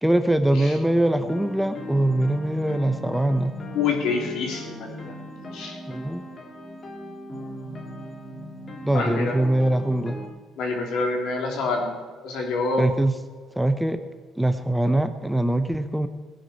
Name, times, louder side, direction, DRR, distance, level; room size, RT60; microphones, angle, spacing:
voice 1, 0.0-3.6 5.9-6.2 8.8-10.2 12.8-13.1 13.6-14.0 14.4-16.1, right 1 dB, ahead, 9 dB, 0.6 m, -22 dB
sound 1, 0.6-10.3, equal, 25° left, 1.8 m, -38 dB
voice 2, 3.7-5.1 5.5-5.8 8.9-9.4 10.6-11.9 12.2-12.9, left 4 dB, 70° left, 1 dB, 3.3 m, -27 dB
17.5 x 11.5 x 4.4 m, 1.5 s
cardioid pair, 175°, 0 cm